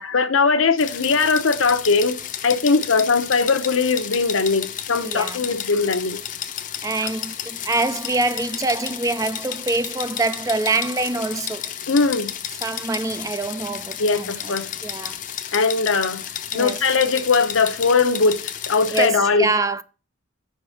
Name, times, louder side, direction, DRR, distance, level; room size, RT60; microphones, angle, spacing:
voice 1, 0.0-2.2 2.4-6.2 11.9-12.3 14.0-14.7 15.5-16.2 16.5-19.5, left 4 dB, 80° left, 0.8 m, -20 dB
sound 1, 0.8-19.1, left 10 dB, 40° left, 0.6 m, -32 dB
voice 2, 5.0-5.4 6.8-11.7 12.6-14.5 14.8-15.2 16.5-16.8 18.9-19.8, right 3 dB, 15° right, 0.3 m, -25 dB
7.3 x 4.7 x 5.5 m
head